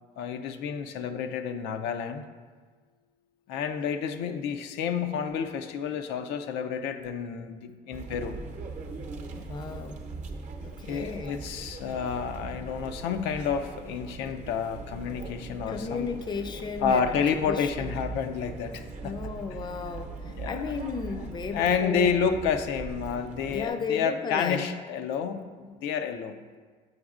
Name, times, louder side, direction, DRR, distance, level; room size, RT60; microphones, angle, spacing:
voice 1, 0.2-2.2 3.5-8.4 10.8-16.1 16.8-19.1 20.4-20.6 21.5-26.4, left 6 dB, 85° left, 7 dB, 0.4 m, -30 dB
sound 1, 7.9-23.7, right 4 dB, 45° right, 0.7 m, -40 dB
voice 2, 9.3-10.0 10.6-11.4 15.7-18.0 19.0-22.2 23.5-24.6, left 5 dB, 25° left, 7 dB, 0.4 m, -34 dB
6.9 x 6.3 x 2.4 m, 1.5 s
cardioid pair, 110°, 17 cm